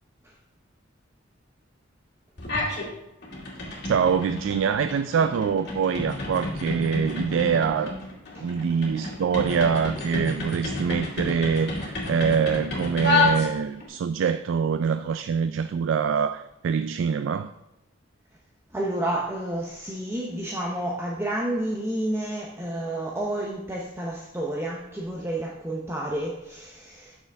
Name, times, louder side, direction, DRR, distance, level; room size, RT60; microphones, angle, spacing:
sound 1, 2.4-2.9 3.2-13.9, left 3 dB, 60° left, 2.1 m, -30 dB
voice 1, 3.8-8.0 8.4-17.5, right 6 dB, 80° right, 11 dB, 0.3 m, -24 dB
voice 2, 18.7-27.2, right 1 dB, 15° right, -2 dB, 0.7 m, -30 dB
7.7 x 6.6 x 3.4 m, 0.93 s
head